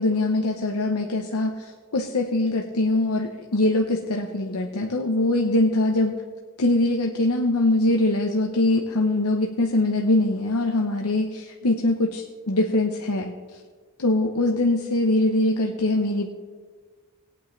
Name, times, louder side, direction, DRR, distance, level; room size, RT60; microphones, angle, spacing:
voice 1, 0.0-6.2 6.6-13.6 14.0-16.3, left 2 dB, 85° left, 3 dB, 0.9 m, -23 dB
20.0 x 8.8 x 3.3 m, 1.5 s
head